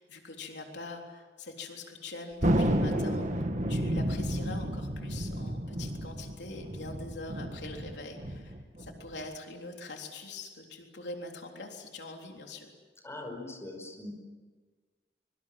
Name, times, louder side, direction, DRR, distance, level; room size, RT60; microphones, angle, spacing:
voice 1, 0.0-12.7, left 2 dB, 85° left, 2 dB, 3.6 m, -43 dB
Thunder, 2.4-9.3, equal, 45° right, 2.1 m, -31 dB
voice 2, 13.0-14.1, left 2 dB, 15° left, 3 dB, 5.3 m, -41 dB
24.5 x 24.5 x 7.8 m, 1.4 s
head